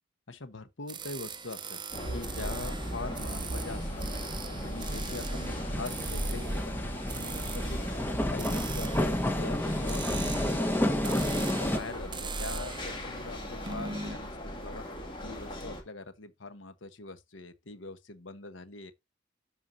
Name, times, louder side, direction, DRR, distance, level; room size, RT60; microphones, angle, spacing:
voice 1, 0.3-1.8 2.1-4.1 4.6-7.8 8.3-14.9 15.2-18.9, left 3 dB, 80° left, 1.1 m, -43 dB
sound 1, 0.9-14.2, right 6 dB, 25° right, 0.6 m, -42 dB
sound 2, 1.9-15.8, equal, 25° left, 2.2 m, -37 dB
sound 3, 2.6-11.8, left 1 dB, 10° left, 1.0 m, -32 dB
13.0 x 4.6 x 2.7 m
head